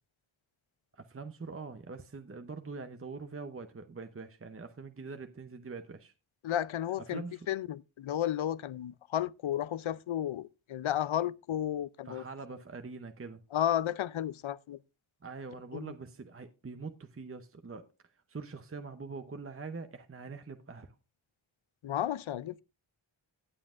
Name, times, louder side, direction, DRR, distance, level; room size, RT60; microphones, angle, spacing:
voice 1, 0.9-6.1 7.0-7.5 12.0-13.4 15.2-17.9 18.1-21.0, right 4 dB, 30° right, 0.8 m, -44 dB
voice 2, 6.4-7.2 7.5-12.2 13.5-14.8 15.7-15.9 21.8-22.6, left 11 dB, 80° left, 0.6 m, -33 dB
16.5 x 7.6 x 2.5 m
wide cardioid pair, 85°, 47 cm